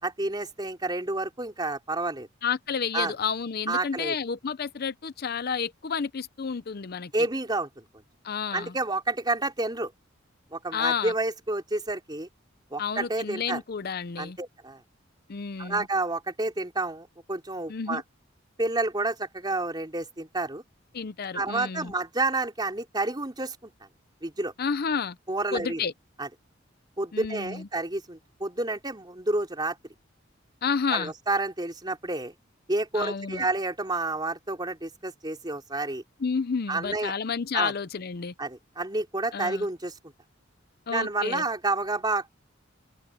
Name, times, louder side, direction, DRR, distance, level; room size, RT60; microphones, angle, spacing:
voice 1, 0.0-2.3 2.9-3.1 3.7-4.1 7.1-7.9 8.5-9.9 10.5-12.3 12.7-13.6 14.2-14.8 15.6-18.0 18.6-20.6 21.3-23.7 24.2-24.5 25.3-25.8 26.2-26.3 27.0-29.8 30.9-32.3 32.7-36.0 36.7-37.1 37.5-37.7 38.4-39.9 40.9-42.3, right 2 dB, 20° right, 3.7 m, -29 dB
voice 2, 2.4-7.1 8.2-8.7 10.7-11.1 12.8-14.4 15.3-15.9 17.7-18.0 20.9-21.9 24.6-25.2 25.5-25.9 27.1-27.7 30.6-31.1 32.9-33.4 36.2-38.3 39.3-39.6 40.9-41.4, left 6 dB, 50° left, 0.6 m, -30 dB
head